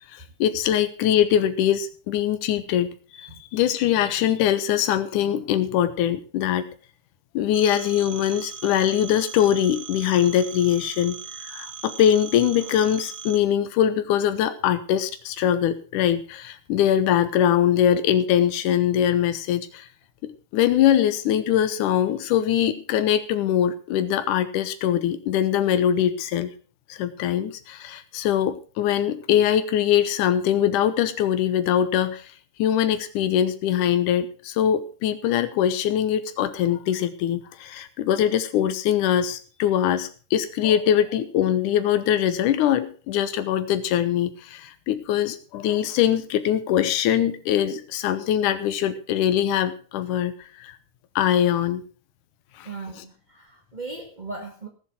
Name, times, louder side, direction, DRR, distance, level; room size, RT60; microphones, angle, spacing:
voice 1, 0.1-6.7 7.3-11.2 11.4-19.9 20.2-26.5 26.9-32.3 32.6-50.7 51.2-51.8 52.6-52.7, left 10 dB, 85° left, 10 dB, 2.5 m, -22 dB
Telephone, 7.5-13.4, right 7 dB, 45° right, 1.6 m, -39 dB
voice 2, 52.6-54.7, right 3 dB, 25° right, 2 dB, 1.0 m, -37 dB
18.0 x 7.8 x 6.0 m, 0.38 s
omnidirectional pair, 3.6 m